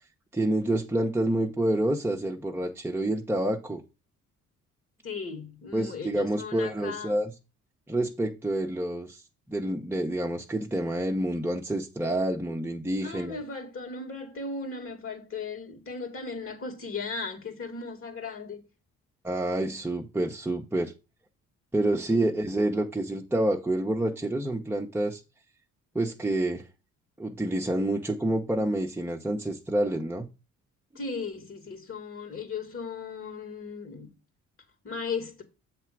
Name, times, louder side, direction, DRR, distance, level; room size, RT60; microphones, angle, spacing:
voice 1, 0.3-3.8 5.7-7.3 7.9-9.2 9.5-13.4 19.2-20.9 21.7-25.2 25.9-26.7 27.2-30.3, right 1 dB, 5° right, 0.9 m, -28 dB
voice 2, 5.0-7.2 13.0-18.7 22.1-22.3 30.9-34.1 34.8-35.4, left 4 dB, 45° left, 2.3 m, -37 dB
7.3 x 3.4 x 6.0 m
cardioid pair, 90°, 30 cm